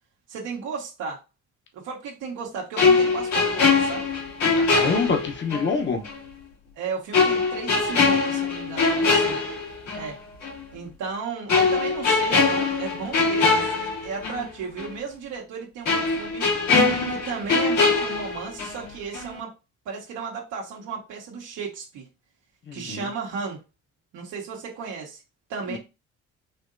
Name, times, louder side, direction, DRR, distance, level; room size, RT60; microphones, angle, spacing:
voice 1, 0.3-1.2 1.7-4.0 6.8-9.4 9.9-10.2 10.7-16.5 17.1-19.5 19.8-22.1 22.7-23.6 24.1-25.2 25.5-25.8, right 5 dB, 90° right, 1.3 m, -34 dB
sound 1, 2.8-5.7 6.0-6.2 7.1-10.1 10.4-10.6 11.5-14.5 14.8-14.9 15.8-18.9 19.1-19.4, left 4 dB, 75° left, 2.0 m, -22 dB
voice 2, 4.6-6.0 22.7-23.1 25.7-25.8, left 5 dB, 40° left, 0.9 m, -26 dB
4.3 x 2.8 x 2.6 m
cardioid pair, 90°, 30 cm